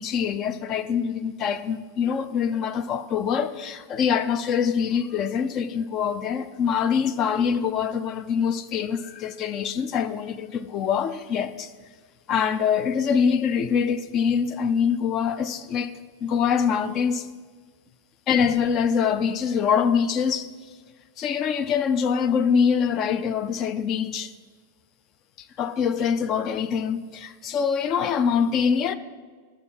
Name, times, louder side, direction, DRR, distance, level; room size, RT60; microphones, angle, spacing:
voice 1, 0.0-11.7 12.3-17.3 18.3-20.5 21.2-24.3 25.4-28.9, left 7 dB, 35° left, 0.5 m, -24 dB
12.0 x 5.7 x 4.6 m
figure-of-eight pair, 90°, 0 cm